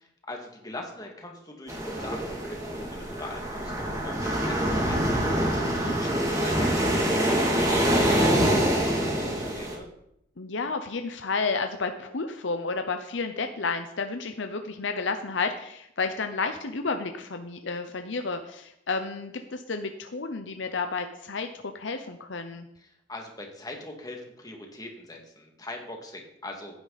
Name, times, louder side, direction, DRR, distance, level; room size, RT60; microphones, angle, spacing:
voice 1, 0.3-5.0 5.3-9.9 22.8-26.7, left 1 dB, 20° left, 1 dB, 2.3 m, -41 dB
sound 1, 1.7-9.7, right 1 dB, 20° right, 2.7 m, -25 dB
voice 2, 10.4-22.7, left 4 dB, 75° left, 7 dB, 0.8 m, -31 dB
15.5 x 9.6 x 4.2 m, 0.77 s
head